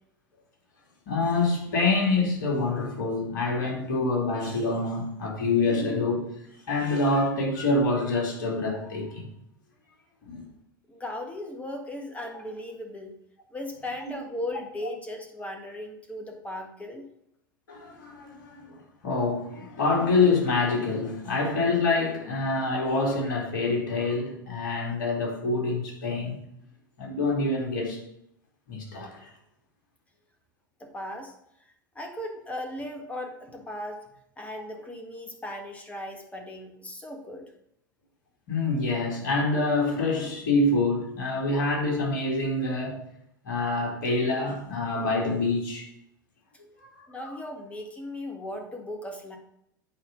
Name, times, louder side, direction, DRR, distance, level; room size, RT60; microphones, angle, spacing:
voice 1, 1.1-6.4 6.7-9.3 10.3-10.4 17.7-26.4 27.0-28.0 28.7-29.3 34.6-34.7 38.5-43.0 43.4-45.9 46.9-47.1, left 3 dB, 60° left, 2.8 m, -26 dB
voice 2, 10.9-13.1 13.5-17.1 30.8-34.1 34.4-37.5 47.1-49.4, left 1 dB, 10° left, 1.7 m, -37 dB
8.6 x 4.9 x 5.4 m
figure-of-eight pair, 85°, 11 cm